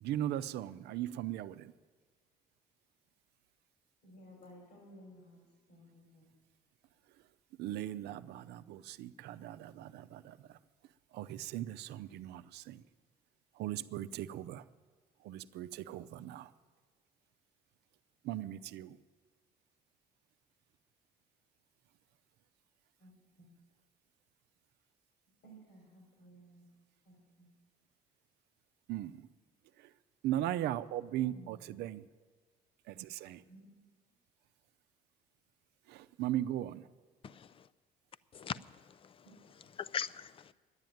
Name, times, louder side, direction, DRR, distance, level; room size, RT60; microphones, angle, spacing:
voice 1, 0.0-1.7 7.6-10.6 11.1-12.8 13.6-14.6 15.2-16.5 18.2-19.0 28.9-29.3 29.8-29.9 30.2-32.1 32.9-33.4 35.9-36.9, right 13 dB, 75° right, 0.6 m, -38 dB
voice 2, 4.0-5.4 5.7-6.3 23.0-23.5 25.4-26.7 27.1-27.5 31.3-31.7 33.4-33.8 39.2-39.7, right 1 dB, 70° left, 3.9 m, -57 dB
voice 3, 37.2-37.7 38.3-39.3 39.8-40.5, left 7 dB, 30° left, 0.4 m, -41 dB
10.5 x 9.7 x 9.2 m
cardioid pair, 110°, 17 cm